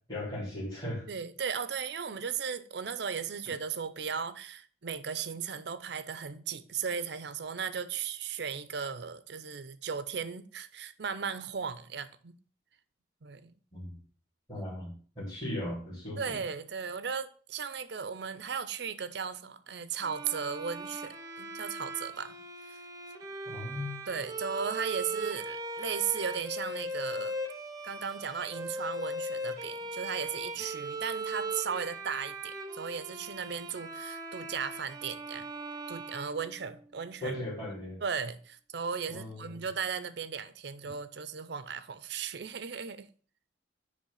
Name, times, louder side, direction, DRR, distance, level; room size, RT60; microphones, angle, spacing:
voice 1, 0.1-1.1 13.7-13.9 14.5-16.4 23.5-24.0 37.2-38.0 39.1-39.5, left 1 dB, 20° left, 3.8 m, -37 dB
voice 2, 1.1-12.4 13.2-13.5 16.2-22.4 22.7-22.8 24.1-27.4 27.8-35.4 35.9-37.3 38.0-43.1, right 6 dB, 60° right, 0.6 m, -36 dB
Bowed string instrument, 20.0-37.0, right 1 dB, 20° right, 0.9 m, -39 dB
10.0 x 3.3 x 5.6 m
head